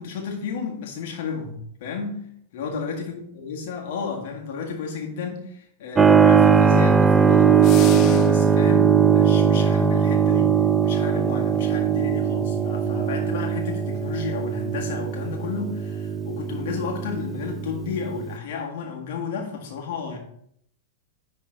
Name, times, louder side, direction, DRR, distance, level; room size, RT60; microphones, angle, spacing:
voice 1, 0.0-2.3 2.5-10.6 10.8-20.2, left 5 dB, 55° left, 0 dB, 1.8 m, -32 dB
Keyboard (musical), 5.9-18.4, right 7 dB, 15° right, 0.4 m, -20 dB
sound 1, 7.6-8.6, left 12 dB, 40° left, 0.5 m, -34 dB
10.5 x 3.7 x 3.8 m, 0.69 s
figure-of-eight pair, 95°, 0 cm